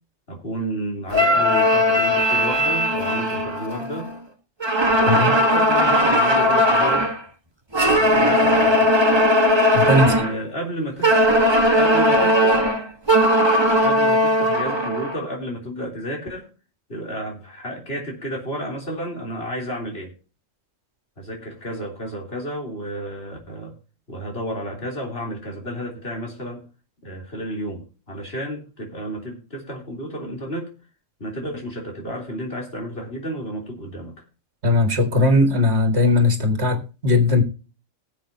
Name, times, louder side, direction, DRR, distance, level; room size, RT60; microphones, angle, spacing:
voice 1, 0.3-4.1 4.9-7.1 7.8-8.9 9.8-11.1 11.8-12.7 13.8-16.5 16.9-20.1 21.2-23.7 24.1-26.6 27.0-30.7 31.2-34.2, equal, 50° left, 3.7 m, -31 dB
sound 1, 1.1-4.2 4.6-7.2 7.7-10.4 11.0-15.2, equal, 20° right, 1.3 m, -18 dB
voice 2, 9.7-10.1 34.6-37.4, left 2 dB, 55° right, 2.2 m, -18 dB
19.5 x 7.5 x 2.8 m
omnidirectional pair, 1.3 m